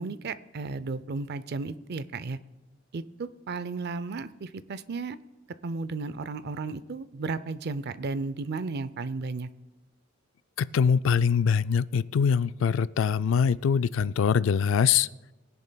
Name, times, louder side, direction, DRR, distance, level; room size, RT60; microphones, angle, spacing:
voice 1, 0.0-2.4 2.9-5.2 5.6-9.5, right 3 dB, 55° right, 15 dB, 0.5 m, -34 dB
voice 2, 10.6-15.1, left 6 dB, 70° left, 16 dB, 0.3 m, -23 dB
21.5 x 10.5 x 2.2 m, 1.1 s
head